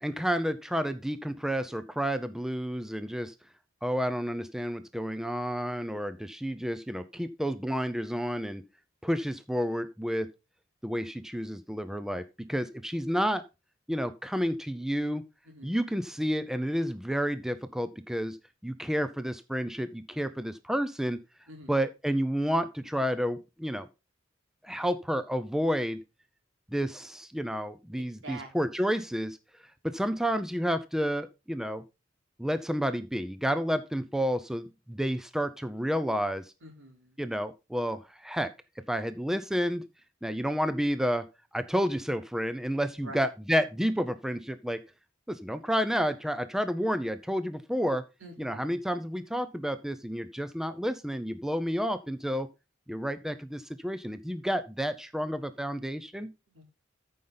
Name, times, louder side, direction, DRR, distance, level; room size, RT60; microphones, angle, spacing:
voice 1, 0.0-3.3 3.8-8.6 9.0-10.3 10.8-13.4 13.9-15.2 15.6-18.4 18.6-21.2 21.7-23.9 24.6-26.0 26.7-29.4 29.8-31.8 32.4-36.4 37.2-38.5 38.9-39.8 40.2-41.3 41.5-44.8 45.3-48.0 48.4-52.5 52.9-56.3, equal, ahead, 11 dB, 0.6 m, -30 dB
voice 2, 27.9-28.5 36.6-37.1 43.0-43.2 48.2-48.8 56.5-56.6, right 2 dB, 85° right, 2 dB, 3.7 m, -46 dB
14.0 x 5.5 x 3.9 m, 0.27 s
head